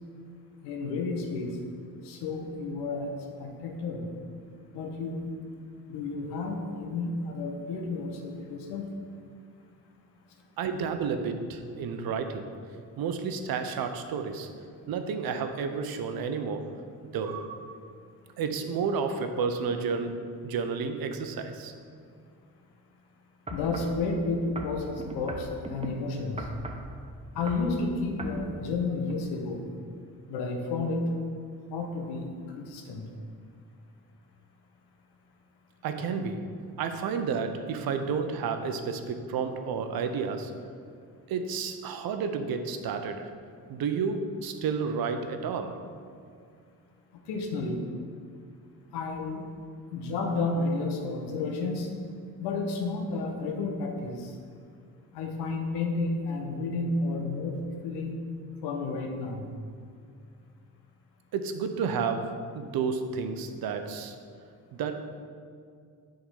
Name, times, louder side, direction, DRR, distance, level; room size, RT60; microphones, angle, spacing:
voice 1, 0.6-1.6 2.0-4.1 4.7-5.3 5.9-8.9 23.5-26.5 27.3-29.6 30.3-31.1 31.7-33.1 47.3-47.8 48.9-49.5 49.9-51.9 52.4-54.4 55.1-58.2 58.6-59.5, left 3 dB, 85° left, 2 dB, 1.0 m, -31 dB
voice 2, 10.6-12.5 13.0-14.5 14.9-16.8 17.1-17.8 18.4-21.7 35.8-36.5 36.8-40.6 41.3-43.3 43.7-45.8 61.3-64.2 64.7-64.9, right 5 dB, 65° right, 7 dB, 0.8 m, -31 dB
sound 1, 23.5-24.0 24.6-25.9 26.4-26.9 27.3-27.7 28.2-28.4 29.0-29.1, right 2 dB, 15° right, 0.8 m, -38 dB
7.1 x 3.8 x 5.4 m, 2.3 s
supercardioid pair, 65°, 39 cm